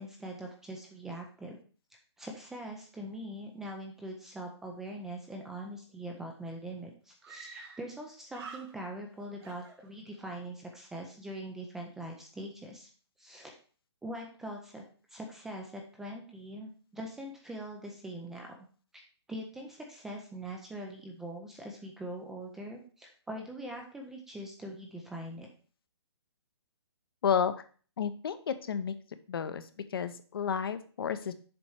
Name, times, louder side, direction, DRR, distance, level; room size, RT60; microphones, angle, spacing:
voice 1, 0.0-1.6 2.2-12.9 13.2-13.5 14.0-14.8 15.1-18.6 19.3-25.5, right 1 dB, 5° right, 1 dB, 0.4 m, -42 dB
Screaming, 6.4-6.5 7.2-8.0 8.3-9.1 9.4-10.3, right 5 dB, 60° right, 2.4 m, -49 dB
voice 2, 27.2-27.5 28.0-29.0 29.3-29.6 29.9-31.3, left 7 dB, 55° left, 11 dB, 0.7 m, -31 dB
7.0 x 4.3 x 4.7 m, 0.41 s
hypercardioid pair, 165°, 15 cm